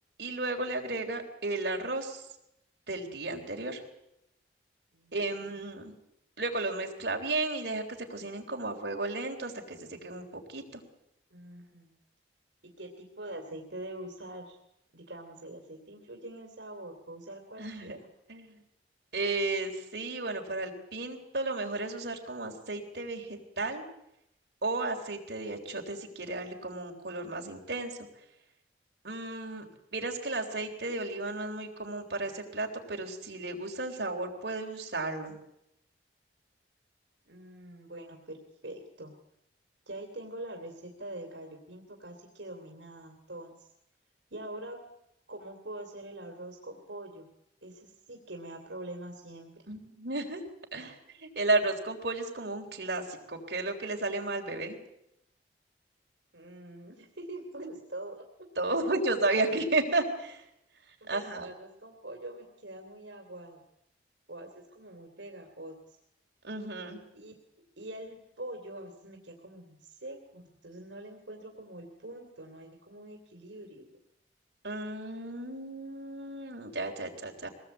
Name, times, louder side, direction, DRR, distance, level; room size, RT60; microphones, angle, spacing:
voice 1, 0.2-2.2 2.9-3.8 5.1-5.9 6.4-7.8 8.1-10.8 17.6-18.0 18.3-18.6 19.1-23.8 24.6-28.0 29.0-29.6 29.9-35.4 49.7-50.4 50.7-54.8 58.6-60.4 61.1-61.5 66.4-67.0 74.6-77.5, right 2 dB, 65° right, 2 dB, 3.5 m, -33 dB
voice 2, 11.3-11.9 12.6-14.6 14.9-18.1 37.3-39.1 39.9-43.7 44.3-44.8 45.3-47.3 47.6-49.5 56.3-58.3 58.7-58.8 61.0-63.6 64.3-66.0 67.1-67.3 67.8-73.9, right 1 dB, 80° right, 3 dB, 2.7 m, -44 dB
22.5 x 18.5 x 8.1 m, 0.83 s
head